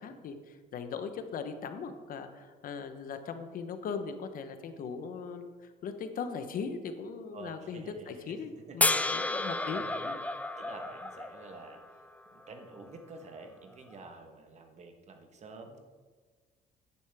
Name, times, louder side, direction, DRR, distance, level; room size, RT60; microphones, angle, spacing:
voice 1, 0.0-10.3, left 5 dB, 55° left, 8 dB, 0.9 m, -39 dB
voice 2, 7.3-8.4 8.7-10.0 10.6-12.0 12.3-15.8, right 3 dB, 40° right, 5 dB, 1.3 m, -49 dB
sound 1, 8.8-12.0 14.1-14.2, left 2 dB, 10° left, 0.5 m, -31 dB
10.5 x 9.9 x 3.5 m, 1.4 s
cardioid pair, 110°, 17 cm